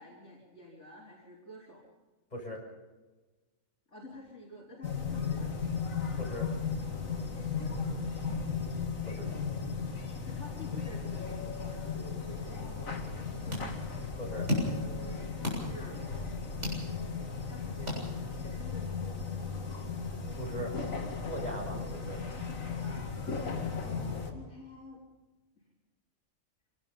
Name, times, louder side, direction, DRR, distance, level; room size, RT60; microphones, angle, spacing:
voice 1, 0.0-1.8 3.9-5.7 10.1-12.9 13.4-13.9 15.0-16.1 17.5-19.0 22.7-23.5 23.8-25.0 25.6-25.7, left 1 dB, 60° left, -4 dB, 5.1 m, -50 dB
voice 2, 2.3-2.6 6.2-6.5 8.3-8.4 9.0-9.4 14.2-14.5 19.9-20.8 21.2-22.2, equal, 30° left, -2 dB, 6.9 m, -40 dB
newyearsparty distantwarsounds, 4.8-24.3, left 5 dB, 85° left, 2.6 m, -36 dB
sound 1, 13.0-18.6, left 1 dB, 60° right, 7.9 m, -38 dB
26.5 x 18.5 x 5.4 m, 1.2 s
omnidirectional pair, 1.4 m